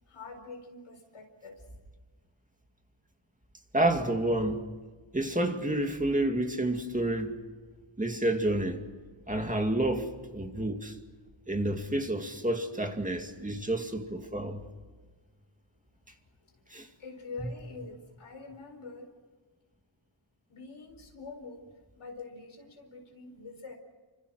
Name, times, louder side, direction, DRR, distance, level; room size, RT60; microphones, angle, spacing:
voice 1, 0.1-1.6 12.0-12.1 16.4-19.1 20.5-23.7, left 4 dB, 85° left, 4.7 m, -45 dB
voice 2, 3.7-4.6 5.1-7.3 8.0-8.8 9.3-11.0 11.5-14.6 16.7-16.9, right 1 dB, 15° right, 2.3 m, -29 dB
30.0 x 25.5 x 6.3 m
wide cardioid pair, 135°, 47 cm